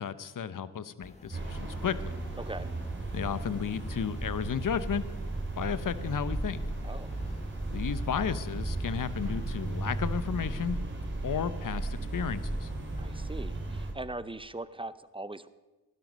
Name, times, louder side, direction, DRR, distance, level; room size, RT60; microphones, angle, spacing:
voice 1, 0.0-2.1 3.1-5.0 5.6-6.6 7.7-10.8 11.2-12.7, left 7 dB, 55° left, 15 dB, 0.9 m, -33 dB
sound 1, 1.0-10.5, left 1 dB, 15° left, 1.6 m, -50 dB
sound 2, 1.3-13.9, right 2 dB, 30° right, 3.6 m, -35 dB
voice 2, 2.4-2.7 6.8-7.1 13.0-15.5, right 2 dB, 15° right, 15 dB, 0.7 m, -40 dB
sound 3, 9.3-11.1 11.4-11.5, right 2 dB, 60° right, 3.2 m, -46 dB
16.0 x 12.0 x 5.4 m, 1.2 s
cardioid pair, 50°, 39 cm